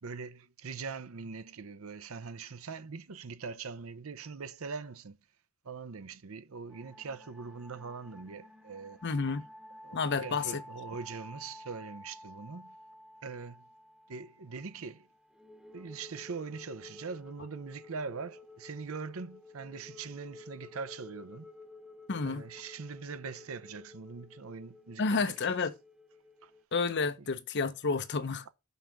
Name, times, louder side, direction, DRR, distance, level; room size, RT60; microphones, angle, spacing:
voice 1, 0.0-5.2 5.6-9.0 9.8-12.8 13.2-13.6 14.1-15.1 15.7-21.5 22.2-25.6 26.4-26.5 27.2-27.3, right 5 dB, 75° right, 0.7 m, -42 dB
sound 1, 6.7-26.6, left 2 dB, 5° right, 0.9 m, -52 dB
voice 2, 9.0-9.5 9.9-10.6 22.1-22.4 25.0-25.7 26.7-28.4, left 4 dB, 55° left, 0.7 m, -30 dB
5.6 x 5.5 x 6.0 m
head